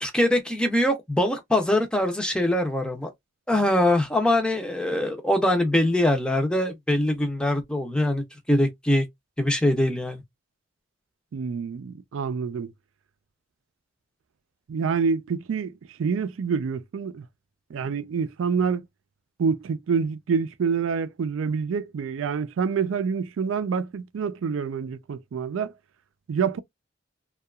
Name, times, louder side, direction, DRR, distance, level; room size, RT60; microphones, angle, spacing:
voice 1, 0.0-3.1 3.5-9.1 9.4-10.2, left 1 dB, 5° left, 0.5 m, -23 dB
voice 2, 11.3-12.7 14.7-15.7 16.0-17.2 17.7-18.9 19.4-25.7 26.3-26.6, right 6 dB, 80° right, 0.4 m, -27 dB
2.7 x 2.3 x 2.3 m
head